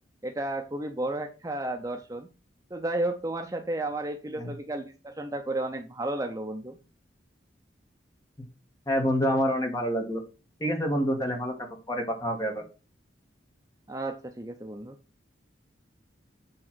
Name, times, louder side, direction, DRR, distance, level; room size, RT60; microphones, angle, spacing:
voice 1, 0.2-2.3 2.7-6.8 13.9-15.0, right 1 dB, 20° right, 5 dB, 0.7 m, -32 dB
voice 2, 8.9-10.2 10.6-11.5 11.9-12.6, equal, 20° left, 3 dB, 1.8 m, -27 dB
8.8 x 3.8 x 6.1 m, 0.33 s
head